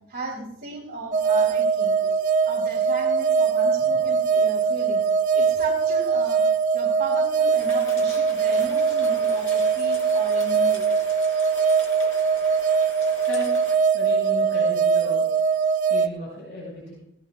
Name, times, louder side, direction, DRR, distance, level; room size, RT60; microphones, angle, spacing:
voice 1, 0.1-5.0 5.3-6.5 6.7-10.9, right 2 dB, 55° right, -5 dB, 2.9 m, -35 dB
sound 1, 1.1-16.1, right 6 dB, 40° right, 0.6 m, -22 dB
sound 2, 7.6-13.8, left 3 dB, 90° left, 3.5 m, -42 dB
voice 2, 13.9-15.3 15.9-16.9, left 1 dB, 60° left, -4 dB, 5.6 m, -35 dB
17.5 x 17.0 x 2.4 m, 0.76 s
head